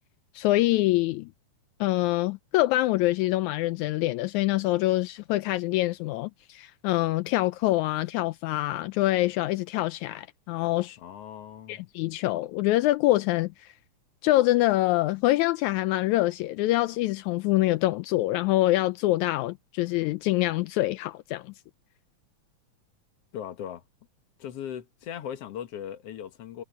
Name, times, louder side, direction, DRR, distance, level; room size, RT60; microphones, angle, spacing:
voice 1, 0.3-1.3 1.8-11.0 11.7-13.7 14.2-21.5, left 17 dB, 80° left, 1.9 m, -25 dB
voice 2, 11.0-11.8 23.3-23.8 24.4-26.6, left 9 dB, 60° left, 2.2 m, -38 dB
omnidirectional pair, 3.4 m